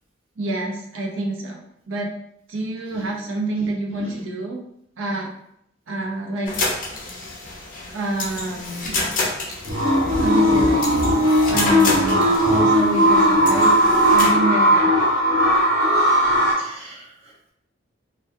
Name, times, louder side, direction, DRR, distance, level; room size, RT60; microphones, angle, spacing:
voice 1, 0.4-2.1 2.5-4.6 5.0-5.3 5.9-6.5 6.8-6.9 7.9-9.0 10.2-10.9 11.5-13.8 14.1-15.0, right 2 dB, 85° right, 0 dB, 0.5 m, -27 dB
sound 1, 6.5-14.3, left 3 dB, 45° left, 0.5 m, -29 dB
sound 2, 9.7-16.5, equal, 60° right, 1.0 m, -17 dB
voice 2, 16.6-17.5, right 1 dB, 30° right, -7 dB, 0.9 m, -42 dB
2.2 x 2.2 x 2.6 m, 0.74 s
head